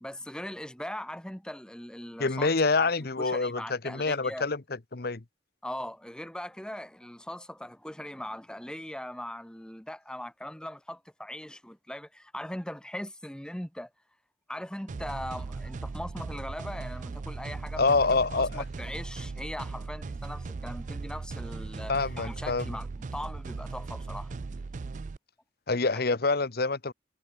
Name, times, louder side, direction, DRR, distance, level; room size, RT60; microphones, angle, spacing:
voice 1, 0.0-2.5 2.8-2.9 3.2-4.5 5.6-13.9 14.5-18.0 18.4-24.3, left 1 dB, 5° left, 1.1 m, -40 dB
voice 2, 2.2-4.6 4.9-5.2 17.8-18.6 21.9-22.7 25.7-26.9, left 3 dB, 55° left, 1.1 m, -26 dB
sound 1, 14.9-25.2, right 4 dB, 45° right, 0.4 m, -38 dB
head